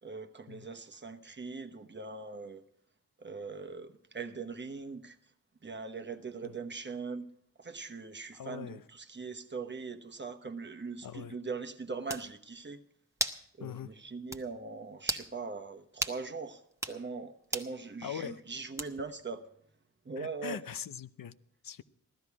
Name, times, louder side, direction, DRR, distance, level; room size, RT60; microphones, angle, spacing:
voice 1, 0.0-2.6 3.2-5.2 5.6-7.2 7.6-12.8 13.6-16.6 16.9-19.4 20.0-20.6, right 4 dB, 30° right, 1.1 m, -41 dB
voice 2, 8.3-8.8 11.0-11.4 13.6-13.9 18.0-18.4 20.2-21.3 21.6-21.8, left 8 dB, 75° left, 0.7 m, -41 dB
sound 1, 11.6-11.7 12.1-12.3 13.2-13.4 13.8-13.9 14.3-14.4 15.0-15.3 16.0-16.2 16.7-17.0 17.5-17.7 18.8-19.1, right 1 dB, 10° right, 1.1 m, -34 dB
16.5 x 12.5 x 4.8 m
wide cardioid pair, 95°, 34 cm